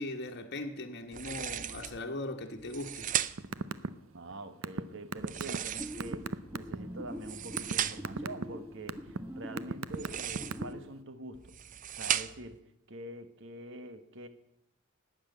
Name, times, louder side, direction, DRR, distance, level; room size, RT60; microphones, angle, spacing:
voice 1, 0.0-3.1, left 2 dB, 55° left, 1.3 m, -39 dB
sound 1, 1.1-2.0 2.6-3.6 5.2-6.3 7.1-8.2 9.9-10.7 11.3-12.6, right 10 dB, 40° right, 0.5 m, -36 dB
sound 2, 3.4-3.9 4.2-6.8 7.3-7.7 8.0-8.4 8.9-9.2 9.6-10.9, right 4 dB, 85° right, 0.6 m, -34 dB
voice 2, 4.1-11.6 11.9-12.6 12.9-14.3, right 1 dB, 65° right, 1.2 m, -45 dB
sound 3, 5.8-10.8, equal, 10° right, 1.0 m, -44 dB
12.0 x 8.8 x 9.1 m
head